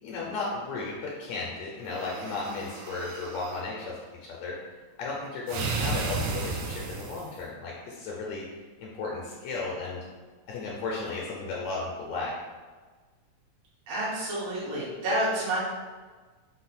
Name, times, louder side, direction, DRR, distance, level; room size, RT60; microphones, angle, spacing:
voice 1, 0.0-4.6 5.0-10.0 10.5-12.3, left 3 dB, 80° left, -4 dB, 1.7 m, -35 dB
sound 1, 1.9-3.6 5.5-7.4, right 3 dB, 80° right, 1.7 m, -33 dB
voice 2, 13.9-15.6, right 1 dB, 60° right, -8 dB, 2.0 m, -29 dB
5.4 x 2.1 x 4.2 m, 1.4 s
omnidirectional pair, 3.6 m